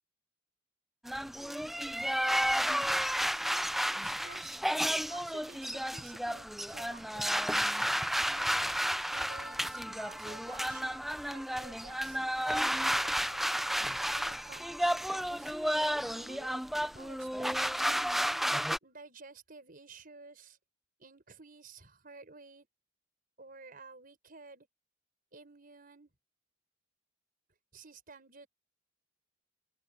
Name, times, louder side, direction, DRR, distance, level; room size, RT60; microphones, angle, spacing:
sound 1, 1.0-18.8, equal, ahead, 0.6 m, -32 dB
voice 1, 2.5-4.6 5.1-7.7 8.3-15.6 16.0-18.0 18.8-20.6 21.0-22.7 23.4-24.7 25.3-26.1 27.7-28.5, right 4 dB, 50° right, 5.7 m, -53 dB
open air
head